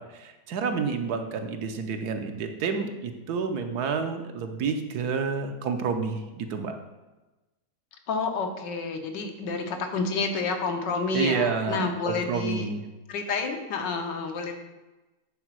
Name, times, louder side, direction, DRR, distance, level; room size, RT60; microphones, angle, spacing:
voice 1, 0.0-6.8 11.1-12.8, right 5 dB, 70° right, 6 dB, 1.2 m, -29 dB
voice 2, 8.1-12.7 13.1-14.6, left 4 dB, 85° left, 4 dB, 1.6 m, -29 dB
9.2 x 4.0 x 6.0 m, 1.1 s
omnidirectional pair, 1.8 m